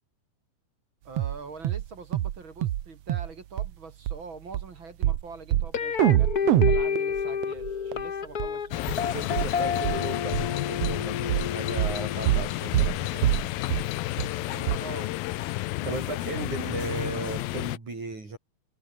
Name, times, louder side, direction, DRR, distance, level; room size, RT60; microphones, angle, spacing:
voice 1, 1.0-8.9 14.5-15.3 15.8-16.4, right 4 dB, 35° right, 4.4 m, -44 dB
sound 1, 1.2-1.4 1.6-1.9 2.1-2.4 2.6-2.8 3.1-3.3 3.6-3.7 4.1-4.2 4.5-4.6 5.0-5.2 5.5-5.7 6.0-8.0 8.4-8.5 8.9-9.0 9.4-9.5 9.8-10.0 10.3-10.5 10.8-11.0 11.3-11.5 11.8-12.0 12.3-12.5 12.7-13.0 13.2-13.4 13.7-13.9 14.2-14.3 14.7-14.8, right 13 dB, 75° right, 1.4 m, -24 dB
sound 2, 5.7-12.8, left 7 dB, 55° left, 1.0 m, -30 dB
sound 3, 8.7-17.8, left 18 dB, 85° left, 2.6 m, -31 dB
voice 2, 9.0-13.3 15.8-18.4, right 3 dB, 55° right, 9.4 m, -36 dB
omnidirectional pair, 4.2 m